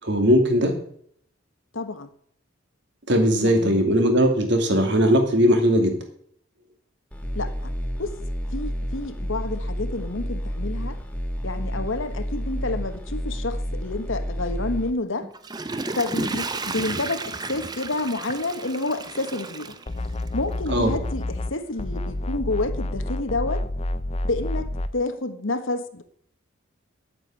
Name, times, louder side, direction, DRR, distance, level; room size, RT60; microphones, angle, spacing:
voice 1, 0.0-0.7 3.1-6.0 20.7-21.0, equal, 55° right, 4 dB, 2.6 m, -19 dB
voice 2, 1.7-2.1 3.4-3.8 7.3-7.7 8.0-8.1 8.5-11.0 11.4-15.3 15.9-19.8 20.3-23.6 24.2-26.0, left 2 dB, 70° left, 9 dB, 1.4 m, -29 dB
sound 1, 7.1-14.9, equal, 5° left, 1.8 m, -30 dB
Water / Toilet flush, 15.2-20.5 21.0-21.1, right 3 dB, 20° right, 0.6 m, -32 dB
sound 2, 19.9-21.5 21.8-24.9, left 1 dB, 30° left, 0.6 m, -29 dB
9.0 x 8.9 x 8.9 m, 0.63 s
head